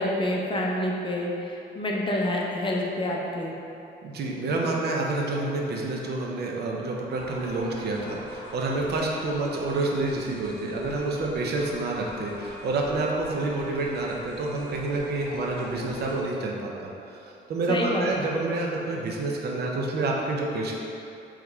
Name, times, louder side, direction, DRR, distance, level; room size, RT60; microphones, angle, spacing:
voice 1, 0.0-3.5 17.7-18.1, left 1 dB, 25° left, -2 dB, 0.6 m, -27 dB
voice 2, 4.0-17.2 17.5-20.7, right 2 dB, 55° right, -1 dB, 0.6 m, -28 dB
sound 1, 7.2-16.2, left 1 dB, 75° left, 0.7 m, -44 dB
3.7 x 3.1 x 3.4 m, 2.8 s
cardioid pair, 90°, 20 cm